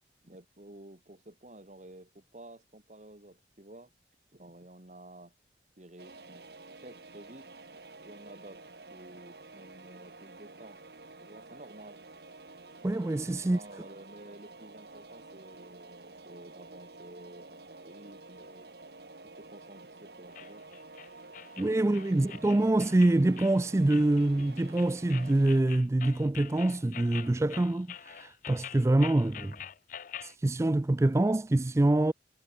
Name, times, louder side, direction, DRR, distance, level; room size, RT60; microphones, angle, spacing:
voice 1, 0.2-3.9 4.3-5.3 5.8-6.4 6.8-7.5 8.0-10.8 11.2-12.0 13.4-18.7 19.4-20.6 21.8-22.2, right 1 dB, 40° right, 2.3 m, -51 dB
sound 1, 6.0-25.6, right 3 dB, 60° right, 2.2 m, -50 dB
voice 2, 12.8-13.6 21.6-29.6 30.2-32.1, right 1 dB, 15° right, 0.3 m, -25 dB
sound 2, 20.3-30.3, left 10 dB, 50° left, 0.5 m, -46 dB
head